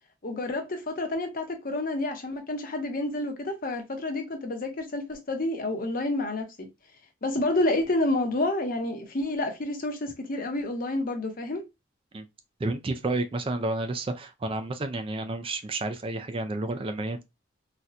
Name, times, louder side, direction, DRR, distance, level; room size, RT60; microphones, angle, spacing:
voice 1, 0.2-6.5 7.2-11.6, left 2 dB, 45° left, 0.8 m, -29 dB
voice 2, 12.6-17.2, right 2 dB, 25° right, 0.4 m, -30 dB
4.2 x 2.2 x 2.4 m
head